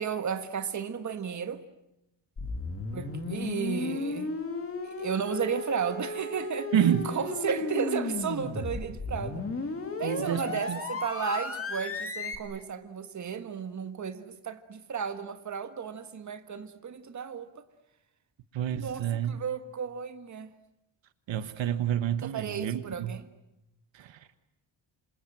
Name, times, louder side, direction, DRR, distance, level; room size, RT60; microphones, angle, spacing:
voice 1, 0.0-1.6 2.9-4.3 4.8-6.7 7.0-9.4 10.0-17.6 18.7-20.5 22.2-23.2, right 7 dB, 35° right, 1.7 m, -34 dB
sound 1, 2.4-12.4, left 3 dB, 30° left, 2.9 m, -34 dB
voice 2, 6.7-7.1 10.0-10.8 18.5-19.4 21.3-23.2 23.9-24.3, right 9 dB, 70° right, 1.4 m, -29 dB
28.5 x 27.0 x 7.7 m
wide cardioid pair, 180°, 46 cm